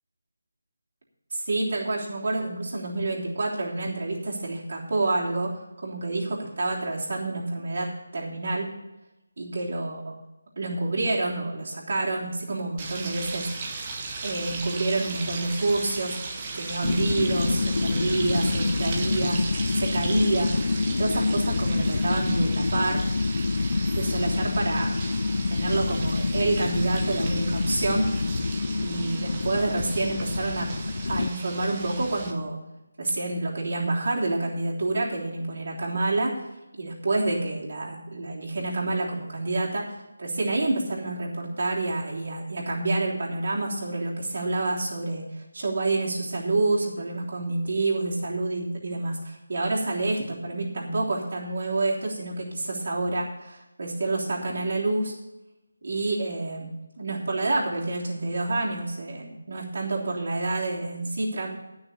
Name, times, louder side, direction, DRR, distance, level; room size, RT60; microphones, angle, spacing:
voice 1, 1.3-8.7 9.4-10.2 10.6-13.8 14.2-16.2 16.5-20.5 20.9-23.0 23.9-25.0 25.5-28.1 28.8-30.7 31.1-32.6 33.0-36.4 36.8-55.1 55.8-56.7 57.0-61.5, right 2 dB, 55° right, -4 dB, 3.2 m, -28 dB
sound 1, 12.8-32.3, right 3 dB, 25° right, 1.4 m, -37 dB
sound 2, 16.8-31.3, left 3 dB, 60° left, 0.3 m, -27 dB
10.5 x 6.3 x 8.4 m, 0.96 s
figure-of-eight pair, 165°, 0 cm